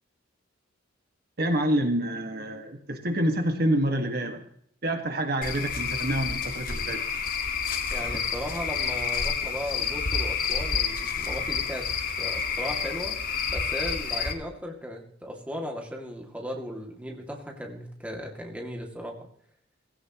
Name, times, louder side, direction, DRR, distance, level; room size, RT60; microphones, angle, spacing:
voice 1, 1.4-4.4 4.8-7.0, right 1 dB, 50° right, 4 dB, 1.9 m, -27 dB
Cricket / Frog, 5.4-14.3, left 6 dB, 50° left, 1.9 m, -29 dB
voice 2, 7.9-11.9 12.2-13.2 13.5-19.2, equal, 5° right, 0 dB, 2.5 m, -36 dB
18.5 x 16.5 x 3.1 m, 0.66 s
head